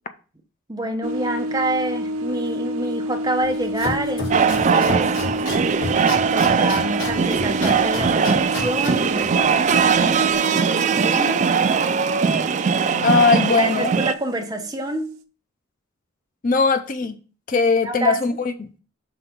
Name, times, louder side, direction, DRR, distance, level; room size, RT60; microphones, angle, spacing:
voice 1, 0.7-5.1 6.3-11.4 12.7-13.2 13.6-15.1 17.5-18.2, right 1 dB, 20° right, 0.8 m, -28 dB
sound 1, 1.0-15.2, equal, 80° right, 0.6 m, -31 dB
Domestic sounds home sounds, 3.4-10.3, left 2 dB, 70° left, 3.7 m, -32 dB
sound 2, 4.3-14.1, right 6 dB, 35° right, 0.3 m, -20 dB
voice 2, 13.0-13.9 16.4-17.1 17.5-18.8, left 3 dB, 40° left, 0.5 m, -19 dB
5.9 x 3.9 x 5.2 m
head